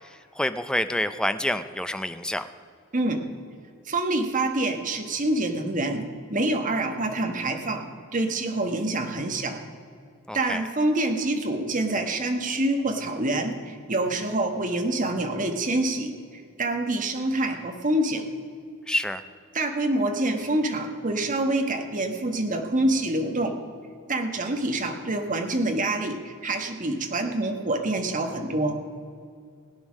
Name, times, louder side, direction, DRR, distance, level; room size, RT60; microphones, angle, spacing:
voice 1, 0.4-2.4 10.3-10.6 18.9-19.2, left 1 dB, 5° left, 10 dB, 0.4 m, -27 dB
voice 2, 3.9-7.8 8.1-9.6 10.3-16.1 16.6-18.2 19.5-23.5 24.1-28.8, right 2 dB, 35° right, 5 dB, 1.2 m, -26 dB
17.0 x 9.3 x 6.2 m, 2.3 s
head